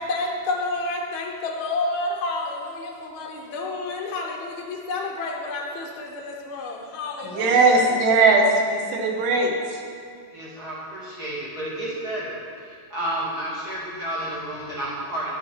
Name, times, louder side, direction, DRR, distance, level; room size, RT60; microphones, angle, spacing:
voice 1, 0.0-8.2, left 2 dB, 80° left, 0 dB, 1.1 m, -30 dB
voice 2, 7.2-9.8, right 3 dB, 90° right, 1 dB, 2.8 m, -19 dB
voice 3, 10.3-15.3, right 1 dB, 30° right, -8 dB, 2.7 m, -31 dB
9.8 x 6.6 x 6.1 m, 2.4 s
omnidirectional pair, 3.6 m